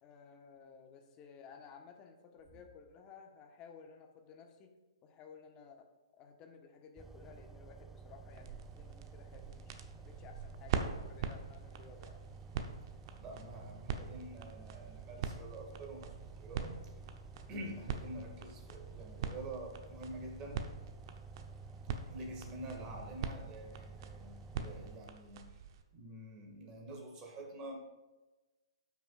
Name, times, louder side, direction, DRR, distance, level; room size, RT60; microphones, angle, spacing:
voice 1, 0.0-4.7 5.0-5.9 6.2-12.2, left 6 dB, 30° left, 4 dB, 1.1 m, -56 dB
sound 1, 7.0-25.0, right 4 dB, 10° right, 0.4 m, -52 dB
sound 2, 8.3-25.8, right 6 dB, 50° right, 0.8 m, -44 dB
voice 2, 13.2-16.8 17.5-20.6 22.1-25.5 25.9-27.8, right 1 dB, 25° right, 1 dB, 1.9 m, -47 dB
13.0 x 6.0 x 2.4 m, 1.1 s
hypercardioid pair, 135°, 3 cm